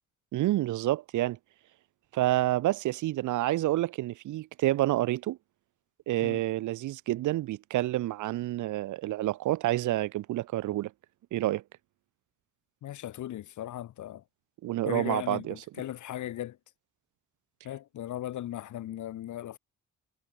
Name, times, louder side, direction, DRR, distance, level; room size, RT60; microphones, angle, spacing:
voice 1, 0.3-1.4 2.1-5.4 6.1-10.9 11.3-11.6 14.6-15.5, right 15 dB, 75° right, 0.9 m, -28 dB
voice 2, 12.8-14.2 14.8-16.6 17.6-19.6, left 12 dB, 75° left, 2.4 m, -37 dB
cardioid pair, 90°, 30 cm